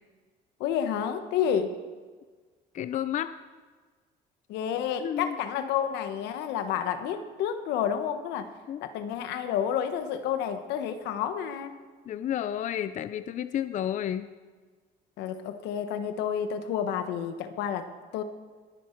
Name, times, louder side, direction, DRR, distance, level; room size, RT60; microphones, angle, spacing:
voice 1, 0.6-1.8 4.5-8.5 8.8-11.7 15.2-18.2, left 8 dB, 90° left, 9 dB, 1.1 m, -30 dB
voice 2, 2.7-3.3 5.0-5.4 8.7-8.8 12.1-14.3, left 10 dB, 45° left, 12 dB, 0.5 m, -31 dB
21.0 x 9.5 x 4.5 m, 1.4 s
cardioid pair, 110°, 17 cm